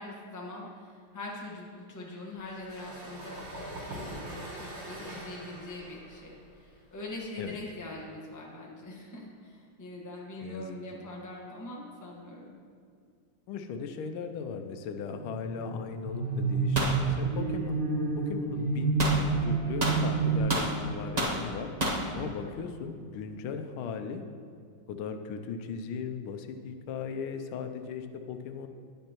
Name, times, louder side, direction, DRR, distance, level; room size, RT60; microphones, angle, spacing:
voice 1, 0.0-12.5 22.0-22.3, left 2 dB, 10° left, -3 dB, 0.8 m, -43 dB
sound 1, 2.4-7.9, right 1 dB, 85° right, 2.7 m, -43 dB
voice 2, 10.4-10.8 13.5-17.8 18.2-21.7 22.1-24.2 24.9-28.7, left 6 dB, 85° left, 7 dB, 1.5 m, -38 dB
sound 2, 15.1-20.4, right 4 dB, 40° right, 1.3 m, -29 dB
sound 3, 16.7-17.0 19.0-19.2 19.8-20.7 21.2-21.4 21.8-22.0, right 1 dB, 65° right, 0.4 m, -28 dB
10.5 x 8.7 x 2.9 m, 2.2 s
omnidirectional pair, 2.3 m